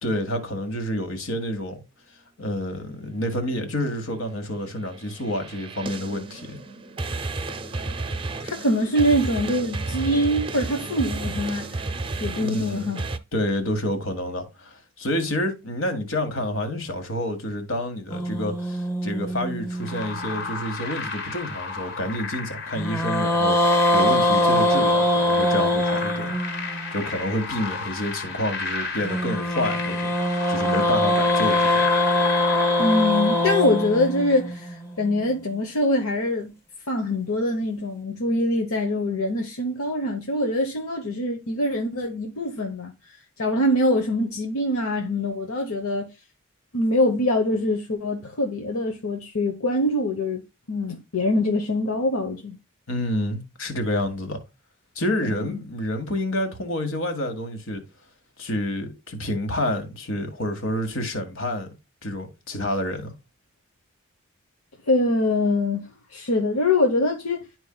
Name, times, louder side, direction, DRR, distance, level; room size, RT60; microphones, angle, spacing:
voice 1, 0.0-1.8 2.4-6.6 12.4-12.9 13.3-26.3 26.9-30.1 30.5-31.7 52.9-54.4 55.0-57.8 58.4-61.7 62.0-63.1, left 1 dB, 70° left, 1.7 m, -28 dB
sound 1, 4.8-13.2, right 3 dB, 25° right, 0.5 m, -32 dB
voice 2, 8.4-11.7 12.2-13.0 32.8-36.5 36.9-42.9 43.4-46.1 46.7-50.4 50.7-52.6 55.2-55.6 64.9-67.5, left 1 dB, 90° left, 1.0 m, -24 dB
sound 2, 18.1-20.5 22.7-26.9 29.0-35.2, left 1 dB, 10° left, 1.0 m, -23 dB
sound 3, 19.8-34.2, left 4 dB, 50° left, 1.7 m, -33 dB
11.5 x 4.5 x 2.2 m
head